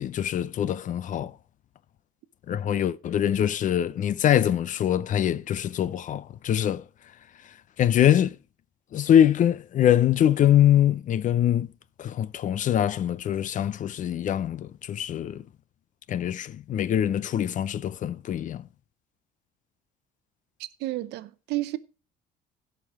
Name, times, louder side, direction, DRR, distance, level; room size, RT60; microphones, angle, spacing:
voice 1, 0.0-1.4 2.5-6.9 7.8-8.4 8.9-11.7 12.0-15.5 16.1-18.7, left 10 dB, 50° left, 0.5 m, -23 dB
voice 2, 20.6-21.8, right 17 dB, 80° right, 0.7 m, -31 dB
16.5 x 5.9 x 4.7 m
cardioid pair, 110°, 17 cm